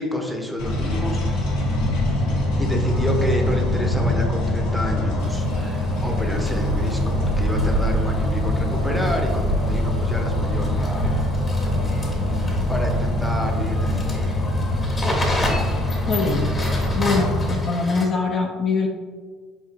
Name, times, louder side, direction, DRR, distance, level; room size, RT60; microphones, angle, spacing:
voice 1, 0.0-1.5 2.6-11.2 11.6-11.9 12.7-14.4, equal, ahead, 1 dB, 0.6 m, -29 dB
sound 1, 0.6-17.6, left 1 dB, 85° left, 0.9 m, -23 dB
sound 2, 5.2-18.1, left 1 dB, 30° left, 1.1 m, -33 dB
sound 3, 6.5-15.6, right 1 dB, 70° right, 0.4 m, -29 dB
voice 2, 16.1-16.5 16.9-18.9, left 4 dB, 45° left, 1 dB, 0.4 m, -23 dB
4.2 x 2.7 x 2.5 m, 1.5 s
supercardioid pair, 85°, 0 cm